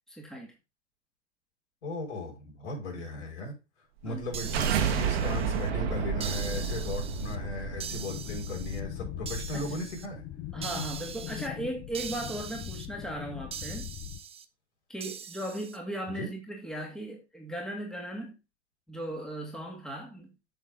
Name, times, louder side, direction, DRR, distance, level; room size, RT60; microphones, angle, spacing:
voice 1, 0.1-0.5 3.0-3.1 4.0-4.3 9.5-9.8 10.5-13.9 14.9-18.4 18.9-20.3, right 1 dB, ahead, 2.3 m, -37 dB
voice 2, 1.8-3.5 4.0-10.2 16.1-16.3, left 1 dB, 70° left, 6.1 m, -37 dB
sound 1, 4.1-9.2, right 7 dB, 60° right, 1.7 m, -31 dB
sound 2, 4.3-5.7 6.2-7.4 7.8-8.8 9.3-10.1 10.6-11.5 11.9-12.9 13.5-14.5 15.0-15.8, right 8 dB, 15° right, 0.7 m, -42 dB
sound 3, 4.4-14.2, left 12 dB, 30° left, 1.3 m, -40 dB
8.7 x 6.7 x 3.9 m
hypercardioid pair, 105°, 35 cm